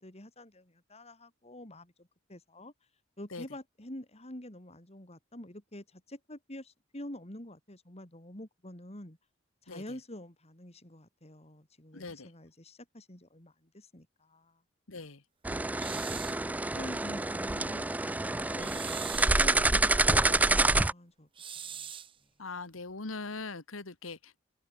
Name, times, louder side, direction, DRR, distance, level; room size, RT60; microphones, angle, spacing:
voice 1, 0.0-2.7 3.2-9.2 9.6-14.6 15.4-16.2 16.5-17.9 18.2-19.6 20.2-21.3 21.7-21.9, left 1 dB, 30° left, 3.9 m, -47 dB
voice 2, 9.7-10.0 11.9-12.3 14.9-15.2 20.3-20.4 22.4-24.4, left 3 dB, 85° left, 1.8 m, -41 dB
sound 1, 15.4-20.9, right 2 dB, 10° right, 0.3 m, -27 dB
sound 2, 15.8-16.4 18.6-19.4 21.4-22.2, right 8 dB, 25° right, 1.0 m, -42 dB
head